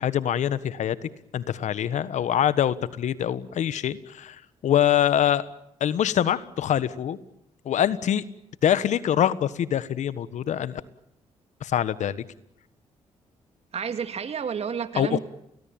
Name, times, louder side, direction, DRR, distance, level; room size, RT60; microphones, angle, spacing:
voice 1, 0.0-4.4 4.6-5.5 5.8-7.2 7.6-8.2 8.6-10.8 11.6-12.2 15.0-15.2, left 10 dB, 70° left, 16 dB, 1.4 m, -24 dB
voice 2, 13.7-15.2, right 7 dB, 55° right, 9 dB, 2.8 m, -30 dB
29.5 x 20.0 x 8.8 m, 0.79 s
cardioid pair, 65°, 13 cm